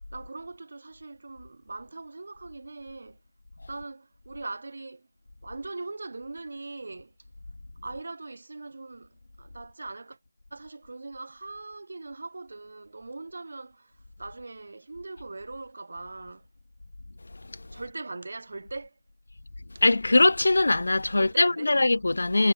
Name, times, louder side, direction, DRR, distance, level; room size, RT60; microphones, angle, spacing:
voice 1, 0.1-3.2 3.7-5.1 5.4-7.2 7.8-10.2 10.5-16.5 17.7-19.0 19.7-19.8 21.2-21.7, right 3 dB, 45° right, 3.5 m, -41 dB
voice 2, 19.8-22.5, left 2 dB, 60° left, 1.9 m, -21 dB
figure-of-eight pair, 175°, 0 cm